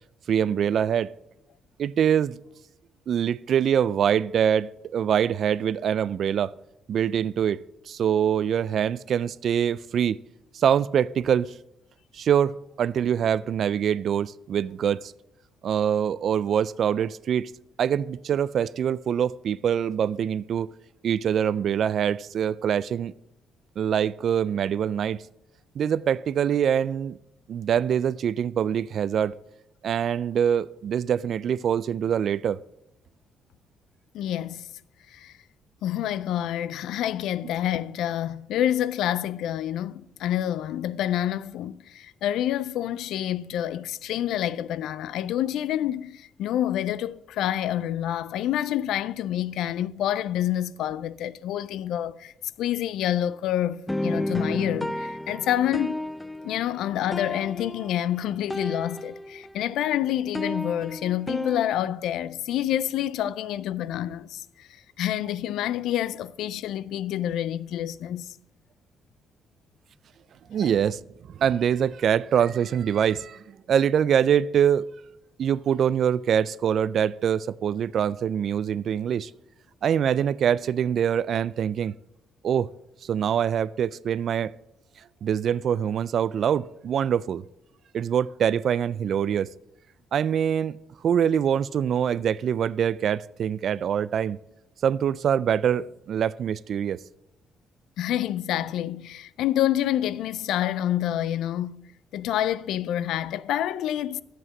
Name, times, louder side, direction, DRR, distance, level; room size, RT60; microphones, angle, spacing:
voice 1, 0.3-1.1 1.8-2.4 3.1-6.5 6.9-10.2 10.5-11.5 12.1-15.1 15.6-17.5 17.8-20.7 21.0-23.1 23.8-25.2 25.8-27.2 27.5-29.3 29.8-32.6 70.5-71.0 71.4-74.9 75.4-79.3 79.8-81.9 82.4-82.7 83.0-84.5 85.2-87.4 87.9-89.5 90.1-90.7 91.0-94.4 94.8-97.0, right 8 dB, 65° right, 0.3 m, -24 dB
voice 2, 34.1-34.7 35.1-35.3 35.8-52.3 52.6-56.0 56.4-64.7 65.0-68.4 70.6-70.7 98.0-104.2, left 11 dB, 85° left, 0.4 m, -28 dB
sound 1, 53.9-59.7 59.9-61.7, left 1 dB, 10° left, 0.5 m, -32 dB
11.0 x 7.7 x 6.3 m
cardioid pair, 90°, 0 cm